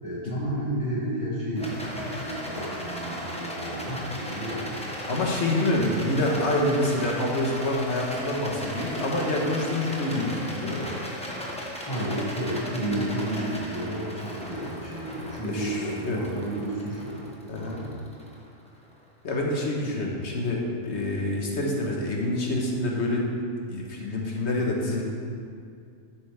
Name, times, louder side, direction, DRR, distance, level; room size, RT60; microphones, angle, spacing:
voice 1, 0.0-4.9 11.9-17.2 17.6-17.9, right 1 dB, 25° left, -7 dB, 2.3 m, -31 dB
Rattle, 1.6-18.9, equal, 5° left, 1.1 m, -37 dB
voice 2, 5.1-10.9 15.4-16.2 17.5-17.8 19.2-23.3 23.7-25.0, left 1 dB, 60° left, -1 dB, 1.7 m, -27 dB
10.5 x 8.2 x 3.5 m, 2.3 s
omnidirectional pair, 1.3 m